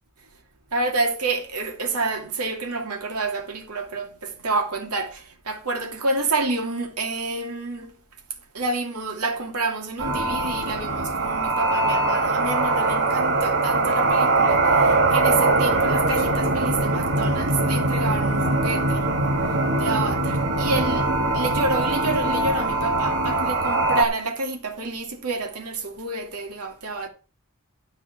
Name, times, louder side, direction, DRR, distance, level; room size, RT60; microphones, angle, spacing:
voice 1, 0.7-7.9 8.5-19.0 19.8-21.1 21.3-27.1, right 3 dB, 85° right, 2.7 m, -28 dB
sound 1, 10.0-24.0, right 2 dB, 60° right, 2.1 m, -22 dB
13.0 x 4.8 x 7.4 m
head